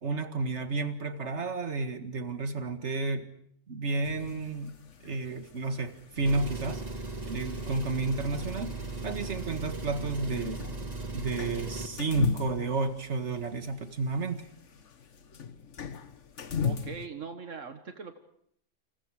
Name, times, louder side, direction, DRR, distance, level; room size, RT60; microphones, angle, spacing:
voice 1, 0.0-3.3 3.7-4.8 5.0-6.8 7.2-8.7 9.0-10.6 11.1-14.5, right 3 dB, 65° right, 7 dB, 2.2 m, -31 dB
sound 1, 4.0-17.1, left 6 dB, 70° left, 1.6 m, -40 dB
Engine, 6.2-12.0, right 3 dB, 35° right, 1.9 m, -37 dB
voice 2, 16.6-18.2, right 5 dB, 85° right, 7 dB, 1.9 m, -41 dB
29.5 x 29.0 x 5.0 m, 0.68 s
omnidirectional pair, 1.3 m